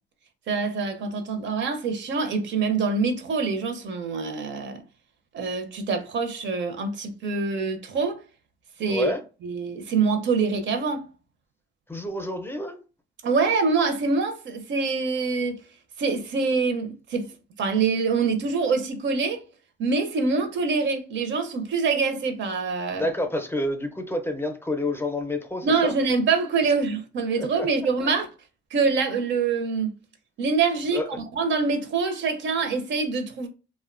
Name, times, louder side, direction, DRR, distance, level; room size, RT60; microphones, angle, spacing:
voice 1, 0.5-4.8 5.3-8.2 8.8-9.1 9.4-11.1 13.2-15.6 16.0-17.3 17.6-19.4 19.8-23.1 25.6-28.3 28.7-29.9 30.4-31.0 31.3-33.5, right 4 dB, 70° right, 0.6 m, -25 dB
voice 2, 8.9-9.2 11.9-12.8 22.9-25.9 27.4-27.7 30.9-31.1, left 1 dB, 10° left, 0.5 m, -28 dB
2.6 x 2.1 x 2.4 m
cardioid pair, 90°, 20 cm